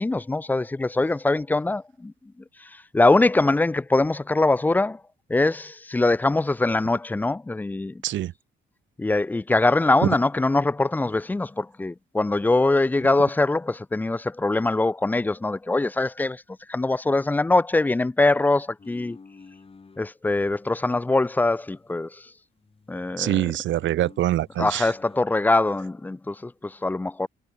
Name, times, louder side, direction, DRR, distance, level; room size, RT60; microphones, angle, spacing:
voice 1, 0.0-2.1 2.9-5.0 5.3-8.0 9.0-16.4 16.7-19.2 20.0-22.1 22.9-23.4 24.6-27.3, left 2 dB, 10° left, 0.3 m, -22 dB
sound 1, 18.8-20.1 20.6-22.3 22.6-25.3, left 4 dB, 30° left, 3.2 m, -52 dB
voice 2, 23.2-24.9, right 13 dB, 70° right, 0.8 m, -24 dB
cardioid pair, 90°, 20 cm